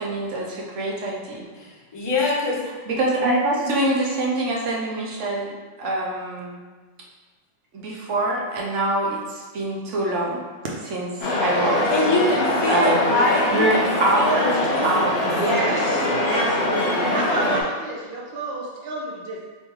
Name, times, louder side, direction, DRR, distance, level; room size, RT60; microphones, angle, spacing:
voice 1, 0.0-1.5 2.9-5.5 5.8-6.6 7.7-10.4 10.9-11.8 12.7-13.1 13.5-14.5 14.8-15.2, right 2 dB, 85° right, -2 dB, 1.1 m, -24 dB
voice 2, 1.5-2.6 11.9-13.9 14.1-15.2, left 2 dB, 30° left, -3 dB, 0.5 m, -24 dB
sound 1, 11.2-17.6, left 1 dB, 65° left, 1.0 m, -23 dB
voice 3, 15.2-19.5, right 1 dB, 65° right, -4 dB, 0.8 m, -29 dB
3.5 x 3.0 x 3.1 m, 1.4 s
omnidirectional pair, 1.2 m